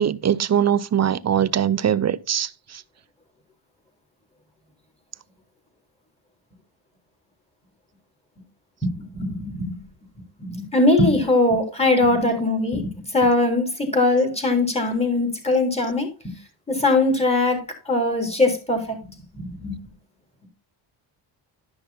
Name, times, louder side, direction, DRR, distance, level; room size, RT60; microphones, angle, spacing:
voice 1, 0.0-2.5, right 9 dB, 35° right, 0.6 m, -21 dB
voice 2, 8.8-9.8 10.4-16.1 16.7-19.0 19.3-19.8, left 2 dB, 10° left, 3.8 m, -21 dB
12.0 x 5.9 x 4.2 m
cardioid pair, 100°, 50 cm